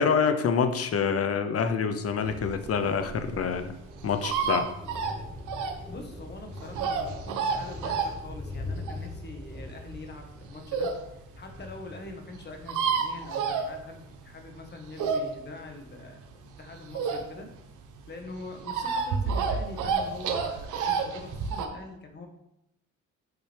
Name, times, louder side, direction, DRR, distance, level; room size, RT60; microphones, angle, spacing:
voice 1, 0.0-3.7 4.0-4.7, left 6 dB, 50° left, 9 dB, 0.9 m, -26 dB
sound 1, 2.0-13.0 13.4-13.5, left 1 dB, ahead, 1.2 m, -42 dB
sound 2, 2.4-11.0 11.5-11.6 11.8-11.9 12.1-12.2 12.3-14.2 14.6-17.6 17.9-21.7, right 5 dB, 80° right, 1.1 m, -30 dB
voice 2, 5.9-10.9 11.3-17.5 18.1-22.3, left 2 dB, 35° left, 3 dB, 1.5 m, -43 dB
8.1 x 6.1 x 3.5 m, 0.82 s
cardioid pair, 90°, 30 cm